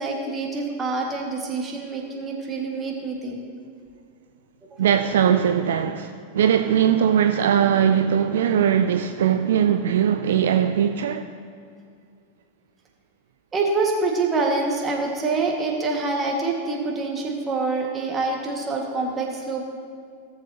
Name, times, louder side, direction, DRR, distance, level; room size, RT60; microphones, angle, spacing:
voice 1, 0.0-3.4 4.7-4.8 13.5-19.6, right 3 dB, 20° right, 1.8 m, -26 dB
voice 2, 4.8-11.2, right 8 dB, 60° right, 0.4 m, -20 dB
17.5 x 7.2 x 2.9 m
figure-of-eight pair, 90°, 0 cm